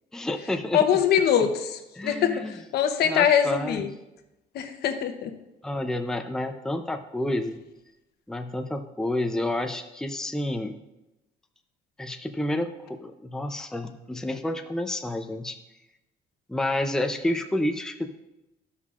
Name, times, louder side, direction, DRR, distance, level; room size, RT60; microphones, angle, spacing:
voice 1, 0.1-0.9 1.4-1.5 1.9-2.5 3.0-3.9 5.6-7.6 8.3-10.8 12.0-15.6 16.5-18.1, left 1 dB, 5° left, 5 dB, 0.5 m, -29 dB
voice 2, 0.7-3.9 4.5-5.3, left 8 dB, 70° left, 7 dB, 0.9 m, -23 dB
14.0 x 5.6 x 2.5 m, 0.96 s
cardioid pair, 110°, 17 cm